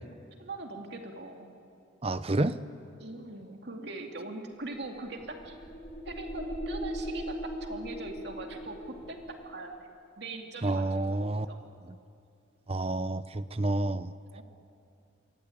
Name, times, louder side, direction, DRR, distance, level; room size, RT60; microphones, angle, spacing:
voice 1, 0.4-1.5 3.0-5.6 6.0-9.7 10.2-11.6 14.3-14.4, right 2 dB, 55° right, 2 dB, 2.6 m, -41 dB
voice 2, 2.0-2.6 10.6-11.5 12.7-14.1, right 2 dB, 30° right, 13 dB, 0.8 m, -29 dB
sound 1, 4.6-9.5, equal, 35° left, 7.0 m, -39 dB
28.5 x 23.5 x 9.0 m, 2.4 s
head